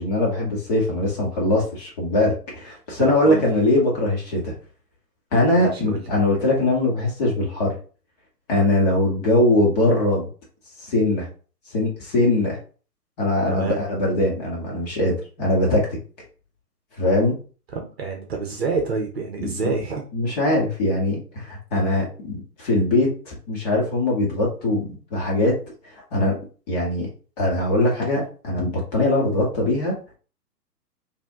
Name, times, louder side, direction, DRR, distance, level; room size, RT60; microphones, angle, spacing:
voice 1, 0.0-4.5 5.3-7.7 8.5-10.3 10.9-11.3 11.7-12.6 13.2-16.0 17.0-17.4 19.4-19.7 20.1-25.5 26.1-26.4 26.7-27.1 27.4-29.9, left 1 dB, 25° left, -3 dB, 1.7 m, -21 dB
voice 2, 3.0-3.5 5.5-6.0 13.5-13.8 17.7-20.0, right 4 dB, 40° right, 2 dB, 1.0 m, -27 dB
4.8 x 2.9 x 3.6 m, 0.37 s
figure-of-eight pair, 135°, 48 cm